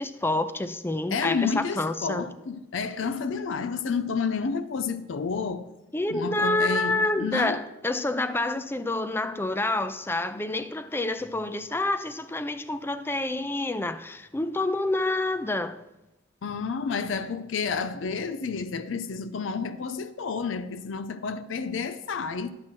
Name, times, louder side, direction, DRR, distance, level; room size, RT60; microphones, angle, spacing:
voice 1, 0.0-2.3 5.9-15.8, left 2 dB, 10° left, 0.4 m, -28 dB
voice 2, 1.1-5.7 6.1-7.6 16.4-22.5, left 5 dB, 80° left, 0.5 m, -30 dB
10.5 x 7.4 x 4.5 m
head